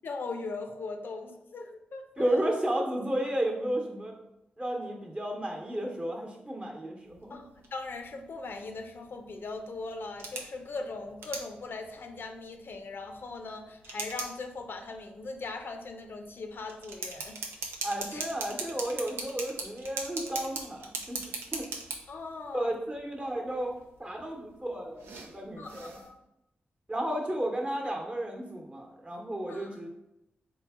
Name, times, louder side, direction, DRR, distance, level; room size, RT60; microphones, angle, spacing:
voice 1, 0.0-2.5 7.3-17.4 18.1-18.2 22.1-22.8 25.6-26.2 29.5-29.8, left 3 dB, 65° left, 5 dB, 0.5 m, -40 dB
voice 2, 2.2-4.2 4.6-7.4 17.8-21.7 22.5-23.7 24.0-26.0 26.9-29.9, right 1 dB, 30° right, 0 dB, 1.0 m, -33 dB
sound 1, 7.0-26.1, right 3 dB, 90° right, 0.5 m, -42 dB
3.8 x 2.7 x 3.6 m, 0.87 s
supercardioid pair, 45°, 4 cm